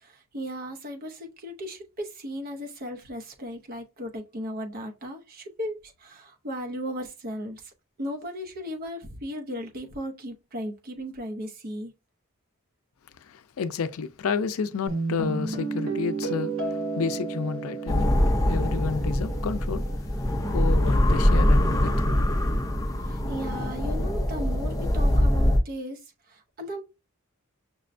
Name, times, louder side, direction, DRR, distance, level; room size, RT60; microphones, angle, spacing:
voice 1, 0.0-7.7 8.0-11.9 22.9-26.0 26.3-26.8, equal, 45° right, 0.7 m, -36 dB
voice 2, 13.2-19.9 20.5-22.4, left 5 dB, 85° left, 0.4 m, -31 dB
Guitar, 14.9-19.9, right 4 dB, 80° right, 1.4 m, -32 dB
sound 1, 17.9-25.6, left 1 dB, 15° left, 0.5 m, -23 dB
6.1 x 2.1 x 2.5 m
head